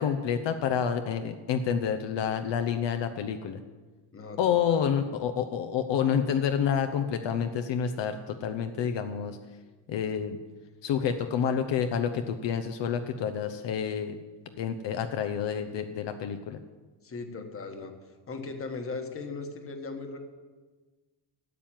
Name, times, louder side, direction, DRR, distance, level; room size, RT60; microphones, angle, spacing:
voice 1, 0.0-3.6 4.4-9.4 9.9-10.4 10.8-14.2 14.6-16.6, left 8 dB, 60° left, 7 dB, 0.9 m, -28 dB
voice 2, 4.1-4.9 17.0-18.0 18.3-20.2, left 4 dB, 30° left, 5 dB, 1.4 m, -38 dB
13.5 x 7.6 x 9.0 m, 1.3 s
cardioid pair, 165°, 47 cm